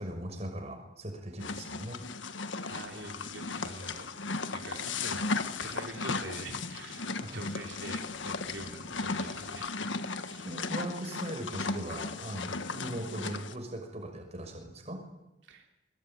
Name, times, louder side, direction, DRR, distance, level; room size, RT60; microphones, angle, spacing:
voice 1, 0.0-2.0 7.1-7.4 10.4-15.0, right 1 dB, 35° right, 4 dB, 6.0 m, -39 dB
sound 1, 1.4-13.5, left 4 dB, 85° left, 1.5 m, -36 dB
voice 2, 2.7-4.1 4.5-5.3 5.6-9.7 10.2-10.5 15.4-15.7, right 2 dB, 80° right, 2 dB, 3.5 m, -45 dB
24.0 x 22.0 x 9.2 m, 0.93 s
head